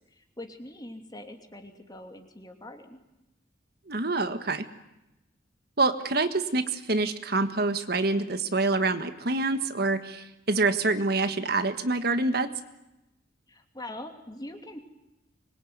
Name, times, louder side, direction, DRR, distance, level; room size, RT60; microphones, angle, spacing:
voice 1, 0.0-3.0 13.5-14.8, left 1 dB, 20° left, 5 dB, 2.9 m, -43 dB
voice 2, 3.9-4.7 5.8-12.5, right 3 dB, 55° right, 9 dB, 1.6 m, -26 dB
25.5 x 22.5 x 9.5 m, 0.92 s
head